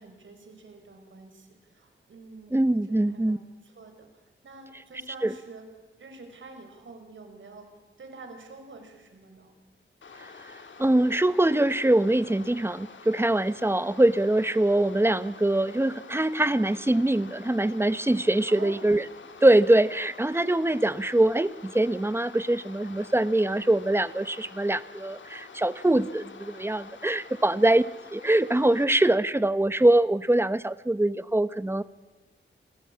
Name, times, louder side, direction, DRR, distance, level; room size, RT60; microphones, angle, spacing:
voice 1, 0.0-5.6 6.0-9.5 18.5-18.9 27.3-27.7, right 3 dB, 75° right, 5 dB, 5.6 m, -48 dB
voice 2, 2.5-3.4 5.2-5.3 10.8-19.0 19.4-27.8 28.1-31.8, right 1 dB, 10° right, 14 dB, 0.9 m, -23 dB
sound 1, 10.0-28.8, left 5 dB, 70° left, 2.2 m, -48 dB
28.5 x 19.5 x 8.7 m, 1.2 s
wide cardioid pair, 125°, 20 cm